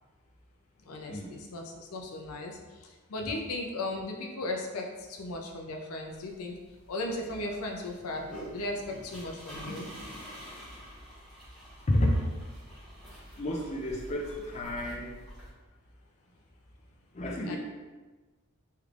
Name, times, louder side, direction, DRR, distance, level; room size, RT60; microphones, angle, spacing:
voice 1, 0.9-6.6 6.9-8.2 8.5-9.9 17.4-17.6, left 2 dB, 85° left, 2 dB, 0.5 m, -36 dB
sound 1, 6.1-15.5, equal, ahead, 1.2 m, -47 dB
voice 2, 11.9-12.2 13.4-15.1 17.1-17.6, left 1 dB, 30° left, -1 dB, 0.3 m, -30 dB
3.2 x 3.2 x 2.4 m, 1.2 s
head